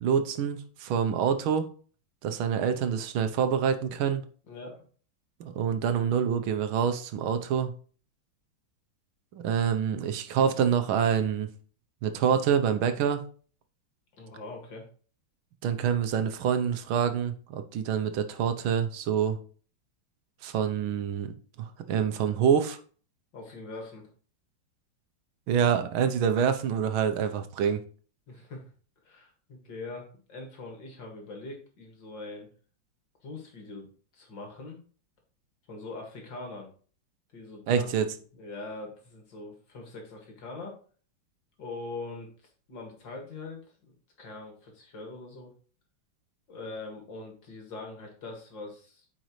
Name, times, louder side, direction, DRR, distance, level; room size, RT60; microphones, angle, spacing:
voice 1, 0.0-1.7 2.2-4.2 5.4-7.7 9.3-11.5 12.0-13.2 15.6-19.4 20.4-21.3 21.6-22.8 25.5-27.8 37.7-38.1, right 7 dB, 80° right, 1.6 m, -26 dB
voice 2, 4.5-4.8 14.2-14.9 23.3-24.1 28.3-28.7 29.0-32.5 33.2-33.9 34.1-34.8 35.7-36.7 37.3-37.9 38.3-40.8 41.6-42.3 42.7-43.6 44.2-45.5 46.5-49.1, left 3 dB, 65° left, 2.7 m, -42 dB
9.0 x 5.3 x 3.1 m
omnidirectional pair, 2.2 m